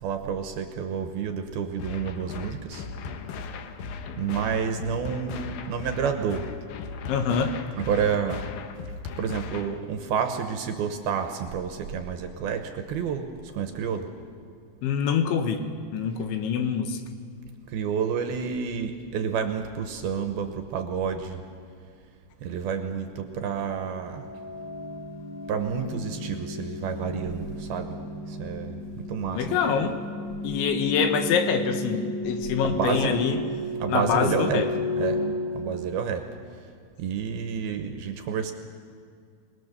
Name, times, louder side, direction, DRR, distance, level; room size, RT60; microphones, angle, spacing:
voice 1, 0.0-2.9 4.2-6.5 7.8-8.5 9.2-13.3 13.5-14.1 17.7-21.4 22.4-24.3 25.5-28.0 28.3-29.9 32.6-33.2 33.8-34.6 35.0-35.2 35.5-36.2 37.0-38.5, right 7 dB, 70° right, 6 dB, 2.6 m, -29 dB
sound 1, 1.8-9.8, left 5 dB, 70° left, 2.3 m, -37 dB
voice 2, 7.1-7.7 14.8-15.6 15.9-17.0 29.3-30.0 30.4-33.4 33.9-34.7, left 6 dB, 85° left, 6 dB, 3.7 m, -25 dB
sound 2, 23.8-36.5, left 1 dB, 30° left, 2.6 m, -34 dB
26.5 x 19.5 x 6.8 m, 2.2 s
omnidirectional pair, 5.2 m